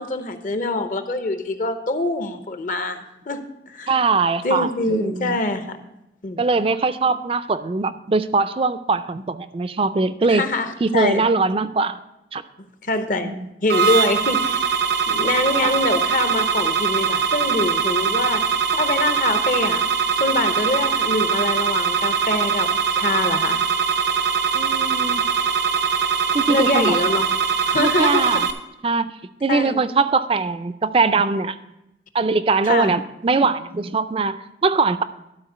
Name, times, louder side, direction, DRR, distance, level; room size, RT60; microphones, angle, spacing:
voice 1, 0.0-3.9 4.4-5.8 6.2-6.4 10.3-11.2 12.8-13.3 13.6-14.7 15.1-18.5 18.7-19.8 20.2-23.6 26.5-27.3 27.6-28.4 29.5-29.8 32.6-32.9, left 2 dB, 45° left, 8 dB, 0.7 m, -24 dB
voice 2, 3.9-5.4 6.4-10.4 10.8-12.0 12.3-12.4 13.2-13.5 15.6-15.7 24.5-25.2 26.3-27.0 27.8-28.5 28.8-29.1 29.4-31.6 32.1-35.0, right 4 dB, 30° right, 13 dB, 0.4 m, -21 dB
sound 1, 13.7-28.5, right 6 dB, 75° right, 0.8 m, -21 dB
12.0 x 4.3 x 6.6 m, 0.90 s
head